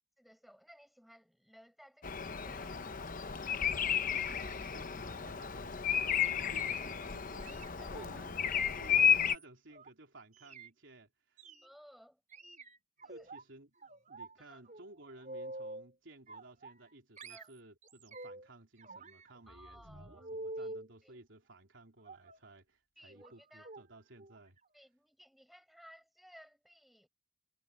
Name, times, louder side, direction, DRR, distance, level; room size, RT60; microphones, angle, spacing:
voice 1, 0.2-2.8 7.8-8.6 11.6-12.2 13.0-13.3 14.4-14.6 17.3-17.5 19.5-20.3 20.6-20.7 21.0-21.2 23.0-23.7 24.7-27.1, equal, ahead, 6.4 m, -59 dB
Bird vocalization bird call bird song, 2.0-9.4, left 8 dB, 45° left, 0.8 m, -32 dB
voice 2, 3.8-11.4 13.1-13.7 14.1-24.6, right 2 dB, 70° right, 3.5 m, -57 dB
sound 1, 6.1-6.7 7.4-9.9 10.3-10.7 11.4-11.7 12.3-13.4 13.8-14.4 14.7-15.9 16.3-16.9 17.2-18.5 18.8-20.9 22.0-22.5 23.2-23.4 23.6-23.8 24.2-24.4 24.7-24.8, right 2 dB, 40° right, 4.5 m, -48 dB
head